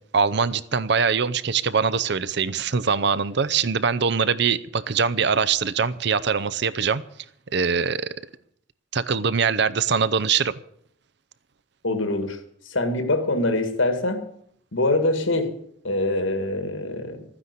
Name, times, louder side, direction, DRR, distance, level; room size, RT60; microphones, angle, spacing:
voice 1, 0.1-7.0 7.5-8.1 8.9-10.5, right 6 dB, 55° right, 15 dB, 0.6 m, -23 dB
voice 2, 11.8-12.4 12.7-14.3 14.7-15.5 15.8-17.2, left 2 dB, 75° left, 8 dB, 2.0 m, -24 dB
13.5 x 9.8 x 8.2 m, 0.68 s
head